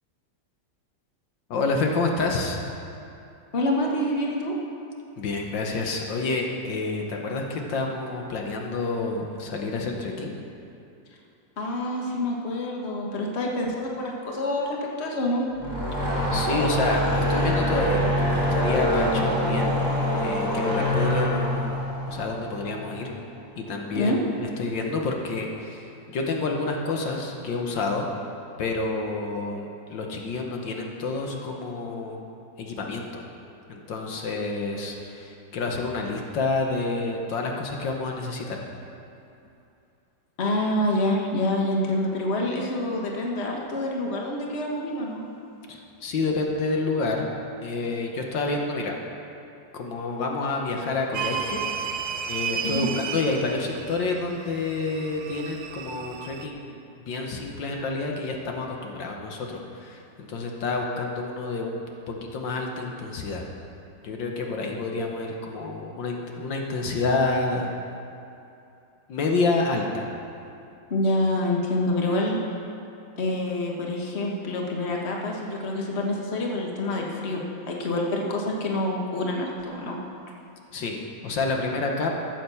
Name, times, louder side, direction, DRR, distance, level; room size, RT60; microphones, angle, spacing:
voice 1, 1.5-2.6 5.2-10.4 16.3-23.1 23.6-24.1 24.4-28.1 28.6-32.3 32.6-33.1 33.7-38.6 45.7-47.3 47.6-49.0 49.7-51.8 52.3-61.8 62.1-63.5 64.0-67.8 69.1-70.1 80.7-82.2, left 3 dB, 75° left, 1 dB, 1.8 m, -29 dB
voice 2, 3.5-4.5 11.6-15.4 23.9-24.2 40.4-45.3 52.6-52.9 70.9-72.4 73.2-80.0, left 1 dB, 35° left, -1 dB, 1.6 m, -27 dB
sound 1, 15.5-22.9, equal, 15° left, 2.9 m, -25 dB
sound 2, 51.1-56.5, right 7 dB, 80° right, 1.4 m, -33 dB
14.0 x 7.8 x 7.0 m, 2.7 s
omnidirectional pair, 2.0 m